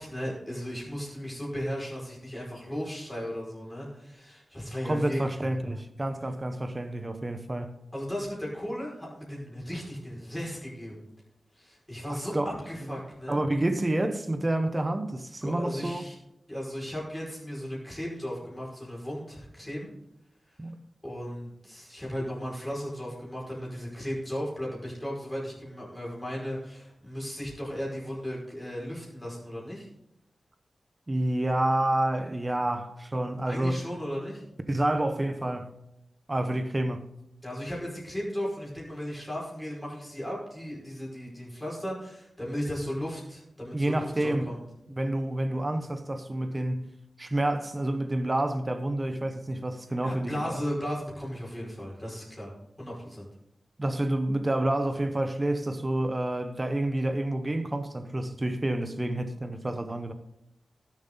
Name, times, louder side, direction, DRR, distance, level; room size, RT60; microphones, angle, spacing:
voice 1, 0.0-5.4 7.9-11.0 11.5-13.4 15.4-16.2 16.5-19.9 21.0-29.9 33.4-34.4 37.4-44.6 50.0-52.5 52.8-53.3, equal, 10° left, 5.2 m, -36 dB
voice 2, 4.9-7.8 12.1-12.5 12.9-13.0 13.3-16.0 20.6-20.8 31.1-33.9 34.7-35.7 36.3-37.1 43.7-44.5 44.9-46.9 47.2-50.6 53.8-60.1, right 1 dB, 20° right, 0.9 m, -29 dB
18.5 x 7.5 x 3.9 m
wide cardioid pair, 140°, 0 cm